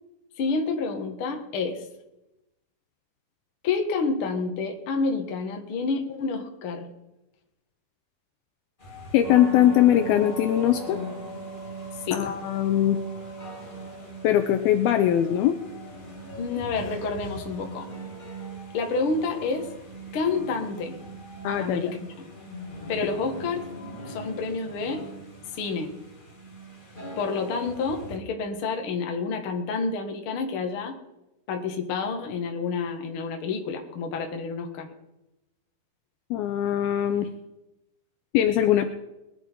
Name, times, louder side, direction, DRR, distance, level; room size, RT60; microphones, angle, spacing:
voice 1, 0.4-1.8 3.6-6.9 12.1-12.3 16.4-17.8 18.7-19.7 20.1-21.0 21.6-22.3 22.9-23.6 24.1-25.1 25.5-25.9 27.2-31.0 31.5-34.9, left 4 dB, 55° left, 3 dB, 1.5 m, -29 dB
sound 1, 8.8-28.2, left 1 dB, 25° left, 1.1 m, -43 dB
voice 2, 9.1-11.0 12.1-13.0 14.2-15.6 21.4-21.9 36.3-37.3 38.3-38.9, left 11 dB, 80° left, 7 dB, 2.3 m, -21 dB
sound 2, 9.2-29.0, right 5 dB, 25° right, 0.8 m, -42 dB
21.0 x 11.0 x 4.6 m, 0.95 s
omnidirectional pair, 4.9 m